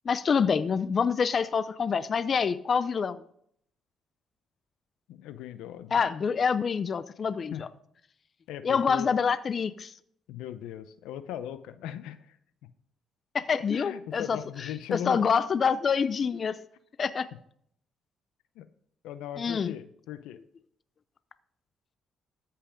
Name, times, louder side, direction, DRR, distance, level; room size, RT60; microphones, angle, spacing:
voice 1, 0.1-3.2 5.9-7.5 8.6-9.9 13.3-16.6 17.0-17.3 19.4-19.7, left 6 dB, 45° left, 15 dB, 0.5 m, -26 dB
voice 2, 5.1-6.1 7.5-7.6 8.5-9.1 10.3-12.4 13.7-15.2 18.6-18.7 19.0-20.4, left 11 dB, 90° left, 12 dB, 0.6 m, -38 dB
13.5 x 5.7 x 5.1 m, 0.68 s
cardioid pair, 75°, 0 cm